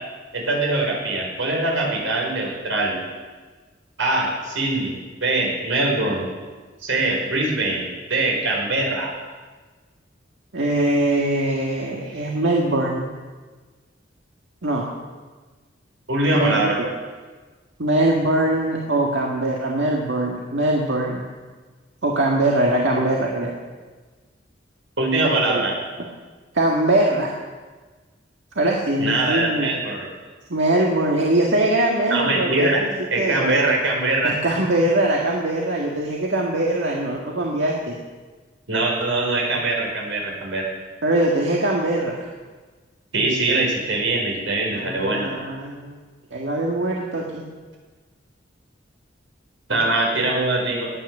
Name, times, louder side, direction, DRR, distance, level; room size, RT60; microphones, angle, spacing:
voice 1, 0.3-3.0 4.0-5.0 5.2-6.3 6.8-7.8 8.1-9.1 12.0-12.3 16.1-16.8 25.0-25.7 29.0-30.1 32.1-32.8 33.1-34.3 38.7-40.6 43.1-45.3 49.7-50.9, right 2 dB, 85° right, 0 dB, 4.8 m, -22 dB
voice 2, 10.5-13.1 14.6-14.9 16.3-16.9 17.8-21.2 22.0-23.5 25.2-25.6 26.5-27.3 28.6-29.7 30.5-32.9 33.2-33.6 34.2-38.0 41.0-42.2 44.7-46.0 46.3-47.4, right 1 dB, 70° right, -2 dB, 1.8 m, -22 dB
18.5 x 9.8 x 6.7 m, 1.4 s
head